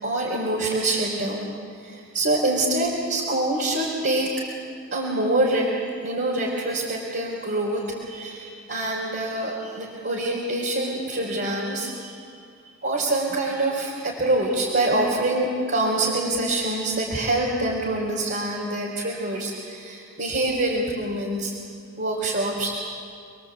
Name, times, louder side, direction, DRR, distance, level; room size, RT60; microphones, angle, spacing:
voice 1, 0.0-1.5 1.8-4.3 4.9-5.7 6.0-12.2 12.8-21.5 22.0-22.9, right 2 dB, 55° right, -4 dB, 4.4 m, -25 dB
29.0 x 22.5 x 8.4 m, 2.3 s
head